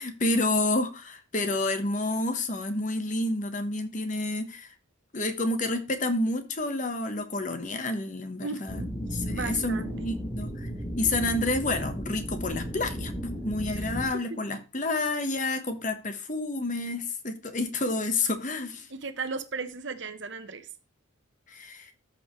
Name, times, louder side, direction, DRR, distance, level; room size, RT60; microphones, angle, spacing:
voice 1, 0.0-4.7 5.1-10.7 11.0-13.1 13.4-18.9 21.5-21.9, left 2 dB, 40° left, 1.2 m, -29 dB
voice 2, 8.4-8.9 9.3-10.1 13.7-13.9 18.9-20.7, right 4 dB, 60° right, 1.0 m, -36 dB
sound 1, 8.7-14.0, equal, 10° left, 5.9 m, -34 dB
13.5 x 5.2 x 3.1 m
head